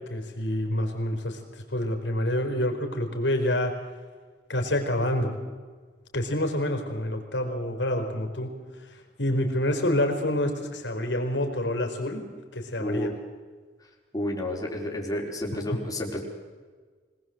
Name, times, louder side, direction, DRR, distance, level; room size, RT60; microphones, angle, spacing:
voice 1, 0.1-1.4 1.7-3.8 4.5-5.4 6.1-8.5 8.9-12.2 12.5-13.1, left 1 dB, 75° left, 5 dB, 4.6 m, -27 dB
voice 2, 12.8-13.1 14.1-16.2, left 1 dB, 20° left, 0 dB, 4.7 m, -30 dB
25.5 x 19.5 x 7.9 m, 1.5 s
head